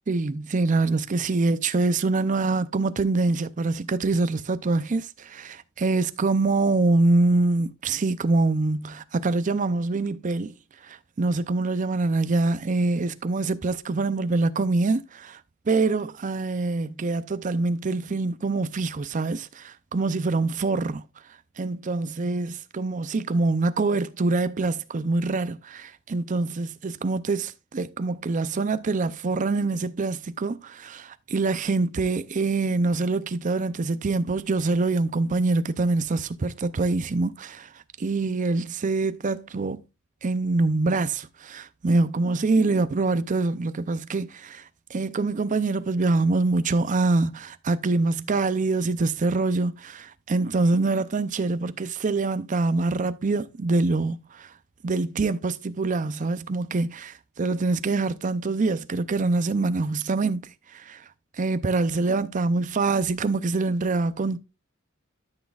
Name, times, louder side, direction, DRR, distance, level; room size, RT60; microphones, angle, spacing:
voice 1, 0.1-10.5 10.8-15.4 15.7-21.0 21.6-37.7 38.0-39.8 40.2-44.6 44.9-54.5 54.8-61.0 61.4-64.4, right 3 dB, 40° right, 0.5 m, -25 dB
13.0 x 6.2 x 2.4 m
head